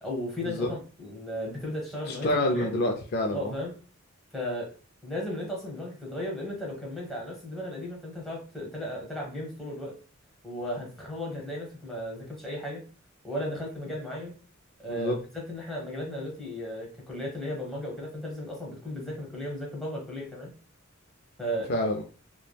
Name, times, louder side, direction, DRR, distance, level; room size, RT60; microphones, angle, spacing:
voice 1, 0.0-2.7 3.3-3.7 4.3-4.7 5.0-9.9 10.4-12.8 13.2-14.3 14.8-15.2 15.5-20.5 21.4-21.7, equal, ahead, -3 dB, 0.9 m, -35 dB
voice 2, 2.1-3.5 14.9-15.2 21.7-22.0, left 1 dB, 50° left, 3 dB, 0.3 m, -27 dB
3.2 x 2.1 x 2.2 m, 0.38 s
head